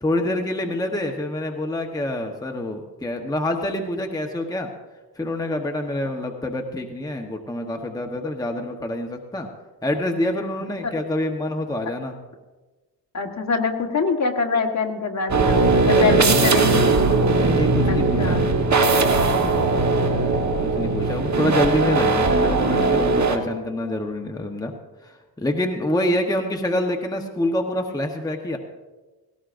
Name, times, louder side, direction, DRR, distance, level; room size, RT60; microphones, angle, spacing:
voice 1, 0.0-4.7 5.2-9.5 9.8-12.2 15.9-16.5 17.4-18.4 20.6-24.7 25.0-28.6, left 1 dB, 10° left, 3 dB, 1.0 m, -26 dB
voice 2, 13.1-15.6 15.9-16.9 17.9-18.4, left 4 dB, 40° left, 3 dB, 1.5 m, -24 dB
sound 1, 15.3-23.4, right 3 dB, 45° right, 1.4 m, -19 dB
18.0 x 17.5 x 2.6 m, 1.2 s
cardioid pair, 105°, 41 cm